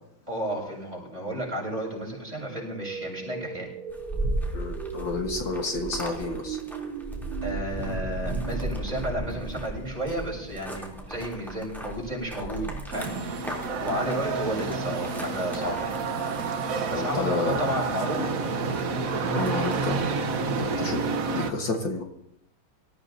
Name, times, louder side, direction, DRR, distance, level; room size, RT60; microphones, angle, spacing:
voice 1, 0.3-3.7 7.4-13.4 13.8-16.0 16.9-18.3, equal, 20° right, -2 dB, 7.5 m, -32 dB
sound 1, 2.5-11.4, right 7 dB, 70° right, 2.5 m, -39 dB
sound 2, 3.9-20.8, right 1 dB, ahead, 3.1 m, -36 dB
voice 2, 4.5-6.6 13.6-13.7 16.9-17.6 19.2-22.0, left 3 dB, 65° left, 2 dB, 2.2 m, -31 dB
sound 3, 12.9-21.5, right 4 dB, 50° right, 1.3 m, -29 dB
26.0 x 15.0 x 2.8 m, 0.77 s
omnidirectional pair, 2.3 m